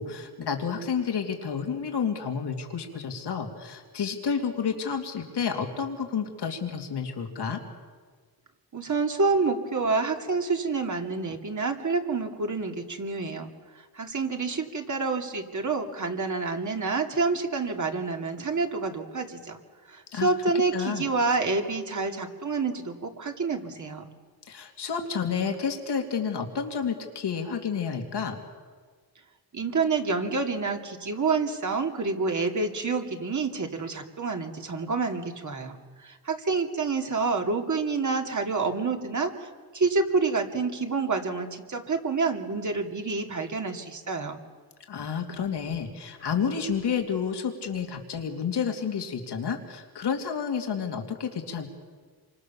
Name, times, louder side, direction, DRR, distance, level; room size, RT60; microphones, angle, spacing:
voice 1, 0.0-7.6 20.1-20.3 20.7-21.1 24.5-28.4 44.9-51.7, left 6 dB, 85° left, 4 dB, 2.9 m, -30 dB
voice 2, 8.7-13.5 14.0-19.6 19.9-24.1 29.5-35.8 36.0-44.4, right 4 dB, 45° right, 3 dB, 2.7 m, -28 dB
27.5 x 25.0 x 7.1 m, 1.5 s
wide cardioid pair, 100°, 39 cm